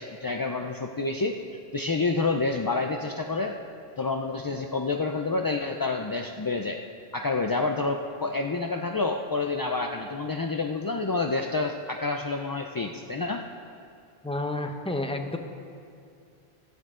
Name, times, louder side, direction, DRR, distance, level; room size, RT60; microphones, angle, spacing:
voice 1, 0.0-1.4 1.7-3.6 4.0-6.8 7.1-13.5, left 3 dB, 35° left, 3 dB, 0.3 m, -28 dB
voice 2, 14.2-15.4, left 2 dB, 5° left, 5 dB, 0.7 m, -30 dB
15.5 x 13.5 x 3.7 m, 2.4 s
omnidirectional pair, 1.0 m